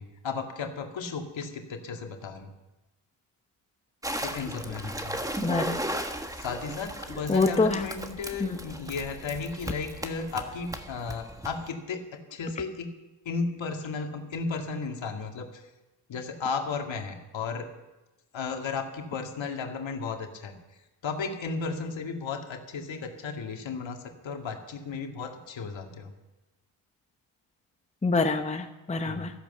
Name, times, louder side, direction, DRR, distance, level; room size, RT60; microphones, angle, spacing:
voice 1, 0.0-2.5 4.2-5.2 6.3-12.9 13.3-15.7 16.1-17.7 18.3-20.5 21.0-24.0 24.2-26.1 29.0-29.3, left 4 dB, 60° left, 3 dB, 2.2 m, -34 dB
sound 1, 4.0-11.7, right 1 dB, 5° right, 1.4 m, -36 dB
voice 2, 5.4-5.8 7.3-7.9 8.4-8.6 28.0-29.3, left 3 dB, 15° left, 6 dB, 1.0 m, -26 dB
14.5 x 10.5 x 7.0 m, 1.0 s
cardioid pair, 75°, 50 cm